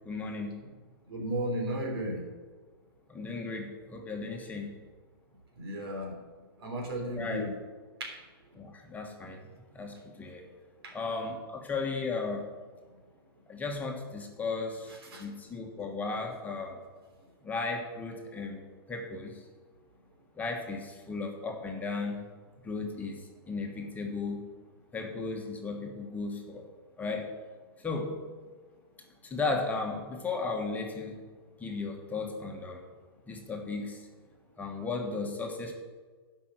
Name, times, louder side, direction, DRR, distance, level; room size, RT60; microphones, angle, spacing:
voice 1, 0.0-0.6 3.1-4.7 7.1-7.5 8.5-9.5 9.7-10.4 10.9-12.5 13.5-16.8 17.4-19.4 20.3-22.2 22.6-24.4 24.9-26.7 27.0-27.3 27.8-28.3 29.2-31.2 31.6-32.8 33.3-34.0 34.6-35.7, left 3 dB, 10° left, 1 dB, 1.4 m, -35 dB
voice 2, 1.1-2.2 5.6-6.2 6.6-7.5 8.0-8.2 10.8-10.9 15.1-15.2, right 1 dB, 80° right, 1 dB, 3.5 m, -34 dB
12.0 x 5.5 x 7.5 m, 1.5 s
hypercardioid pair, 135°, 13 cm